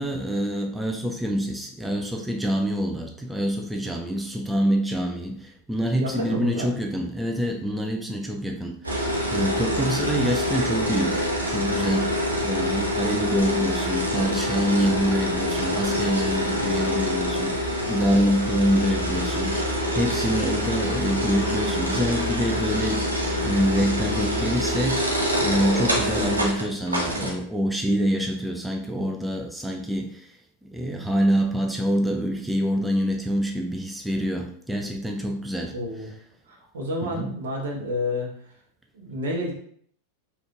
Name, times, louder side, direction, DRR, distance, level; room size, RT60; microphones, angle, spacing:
voice 1, 0.0-30.4 30.6-35.7 37.0-37.3, equal, 5° right, 1 dB, 0.4 m, -26 dB
voice 2, 6.0-6.7 35.7-36.1 36.5-38.5 38.9-39.5, left 1 dB, 60° right, -2 dB, 1.3 m, -30 dB
sound 1, 8.8-27.3, equal, 80° right, 0.9 m, -25 dB
5.1 x 3.2 x 2.5 m, 0.63 s
figure-of-eight pair, 90°, 0 cm